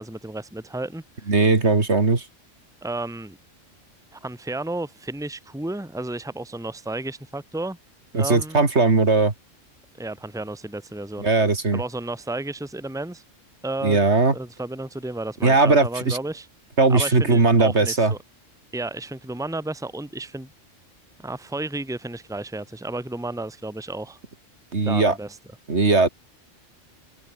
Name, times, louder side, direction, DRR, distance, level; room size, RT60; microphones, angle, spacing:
voice 1, 0.0-1.3 2.8-3.4 4.1-7.8 8.1-8.7 10.0-11.3 11.7-13.2 13.6-14.0 14.3-16.5 16.9-18.2 18.7-20.5 21.2-24.2 24.8-25.4, right 2 dB, 5° right, 1.8 m, -32 dB
voice 2, 1.3-2.2 8.1-9.3 11.2-11.8 13.8-14.3 15.4-16.2 16.8-18.1 24.7-25.1 25.7-26.1, right 3 dB, 60° right, 3.1 m, -19 dB
omnidirectional pair, 1.3 m